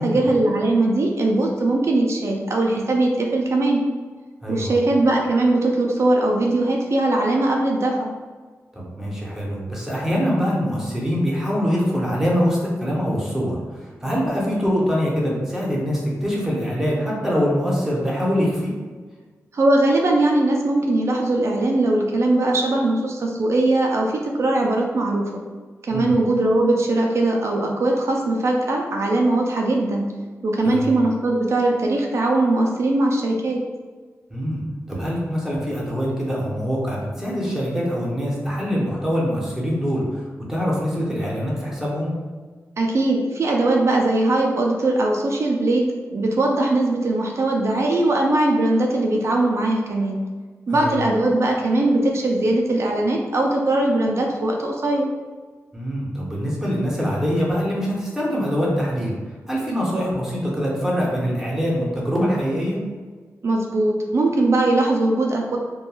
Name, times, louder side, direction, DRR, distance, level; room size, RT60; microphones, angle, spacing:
voice 1, 0.0-3.8 4.5-8.1 19.5-25.4 25.8-30.1 30.4-33.6 42.8-50.2 50.7-55.1 63.4-65.6, right 2 dB, 55° right, 0 dB, 0.4 m, -20 dB
voice 2, 4.4-4.7 8.7-18.7 25.9-26.1 30.7-31.0 34.3-34.6 34.9-42.1 50.7-51.0 55.7-62.8, equal, 10° right, -5 dB, 0.7 m, -24 dB
3.0 x 2.2 x 2.3 m, 1.4 s
wide cardioid pair, 85°, 6 cm